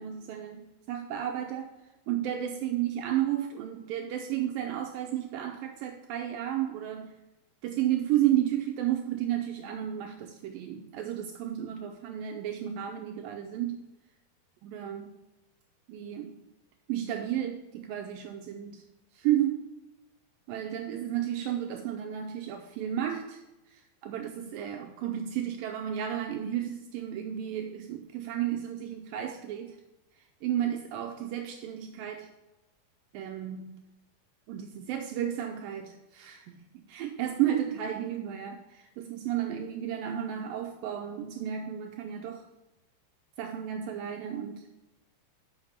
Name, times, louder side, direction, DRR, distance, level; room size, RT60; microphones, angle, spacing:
voice 1, 0.0-1.7 2.1-7.2 7.6-13.8 14.6-15.1 15.9-16.4 16.9-18.8 19.1-19.7 20.5-23.4 23.7-29.8 30.4-32.3 33.1-33.8 34.5-42.5 43.4-44.7, right 11 dB, 90° right, 4 dB, 2.0 m, -32 dB
6.6 x 5.9 x 7.1 m, 1.0 s
omnidirectional pair, 4.7 m